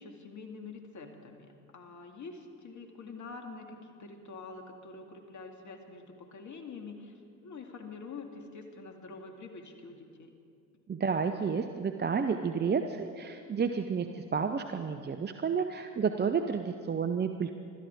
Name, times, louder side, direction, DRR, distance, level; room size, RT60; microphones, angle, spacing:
voice 1, 0.0-10.3, left 4 dB, 40° left, 4 dB, 2.3 m, -46 dB
voice 2, 10.9-17.5, right 6 dB, 25° right, 7 dB, 0.7 m, -31 dB
25.5 x 13.0 x 3.6 m, 2.4 s
hypercardioid pair, 55°, 45 cm